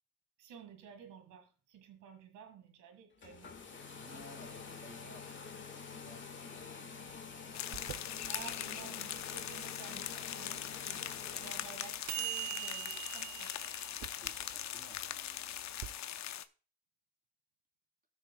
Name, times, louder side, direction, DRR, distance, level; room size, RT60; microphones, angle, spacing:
voice 1, 0.4-3.5 8.2-13.8, right 8 dB, 90° right, 6 dB, 1.8 m, -53 dB
sound 1, 3.1-12.0, left 5 dB, 40° left, 1.6 m, -48 dB
voice 2, 3.9-6.5 11.2-11.4 14.1-15.8, right 1 dB, 30° right, 1 dB, 3.3 m, -58 dB
sound 2, 7.5-16.4, left 11 dB, 65° left, 0.7 m, -41 dB
sound 3, 7.7-15.9, right 16 dB, 70° right, 0.6 m, -44 dB
17.5 x 6.5 x 2.2 m, 0.37 s
cardioid pair, 90°, 30 cm